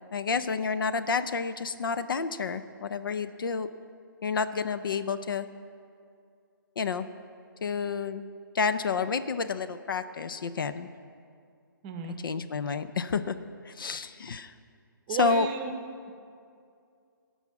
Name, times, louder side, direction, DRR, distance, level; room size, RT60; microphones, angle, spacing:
voice 1, 0.1-3.7 4.2-5.5 6.8-7.1 7.6-8.3 8.5-10.9 12.2-13.4 13.6-14.5 15.1-15.5, left 5 dB, 70° left, 11 dB, 0.6 m, -29 dB
voice 2, 11.8-12.2 15.1-15.7, right 6 dB, 25° right, 5 dB, 0.8 m, -33 dB
16.5 x 5.6 x 7.1 m, 2.4 s
hypercardioid pair, 160°, 12 cm